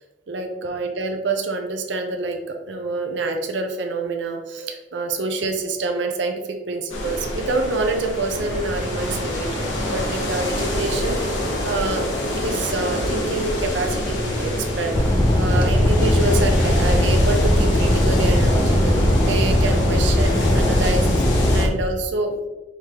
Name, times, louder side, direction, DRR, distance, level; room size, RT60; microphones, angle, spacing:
voice 1, 0.3-12.1 12.4-15.0 15.4-21.3 21.5-22.4, right 3 dB, 65° right, 4 dB, 0.5 m, -27 dB
sound 1, 6.9-21.6, left 1 dB, 80° left, 0.9 m, -27 dB
sound 2, 8.3-21.0, equal, 45° right, 0.9 m, -30 dB
sound 3, 14.9-21.7, left 1 dB, 20° left, 0.4 m, -19 dB
4.6 x 3.6 x 2.8 m, 1.1 s
head